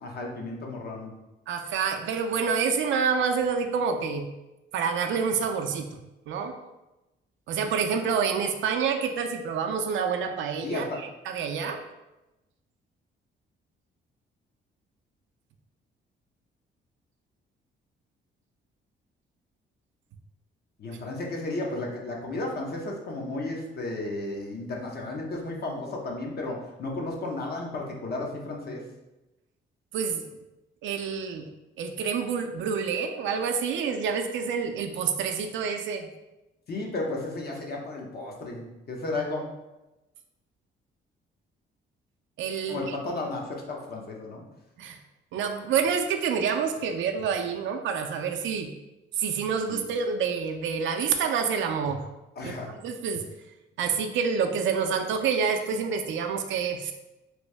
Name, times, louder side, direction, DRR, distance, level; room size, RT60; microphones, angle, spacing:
voice 1, 0.0-1.1 10.6-11.0 20.8-28.8 36.7-39.4 42.7-44.4 49.7-49.8 52.4-52.7, left 2 dB, 50° left, 0 dB, 0.8 m, -33 dB
voice 2, 1.5-4.2 4.7-6.0 6.3-6.5 7.5-11.8 29.9-30.2 30.8-31.5 31.8-36.1 42.4-43.0 44.8-45.0 45.3-48.7 49.2-52.0 52.4-52.5 52.8-53.2 53.8-56.9, right 6 dB, 70° right, 4 dB, 0.4 m, -28 dB
3.1 x 2.6 x 3.2 m, 1.0 s
cardioid pair, 90°, 20 cm